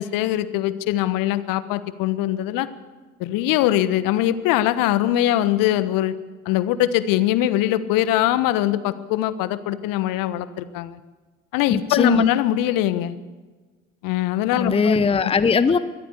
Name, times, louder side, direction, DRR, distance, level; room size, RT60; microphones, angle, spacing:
voice 1, 0.0-2.7 3.2-6.1 6.4-11.0 11.5-13.1 14.0-15.0, left 13 dB, 50° left, 15 dB, 1.4 m, -22 dB
voice 2, 11.7-12.2 14.6-15.8, left 5 dB, 15° left, 14 dB, 0.8 m, -19 dB
22.5 x 15.5 x 8.4 m, 1.3 s
figure-of-eight pair, 65°, 41 cm